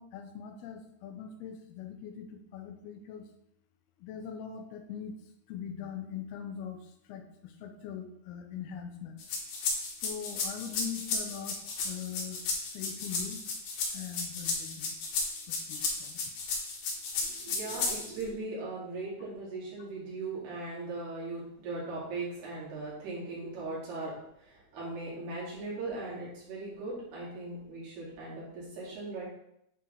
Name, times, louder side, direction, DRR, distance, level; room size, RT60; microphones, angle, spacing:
voice 1, 0.0-3.3 4.0-5.2 5.5-9.2 10.0-11.6 11.8-12.4 12.7-13.4 13.9-15.0 15.5-16.2, left 8 dB, 90° left, 5 dB, 2.7 m, -41 dB
sound 1, 9.2-18.2, left 4 dB, 70° left, 2.9 m, -34 dB
voice 2, 17.2-24.1 24.4-29.2, right 3 dB, 85° right, -7 dB, 4.7 m, -39 dB
9.4 x 4.5 x 3.5 m, 0.78 s
omnidirectional pair, 4.4 m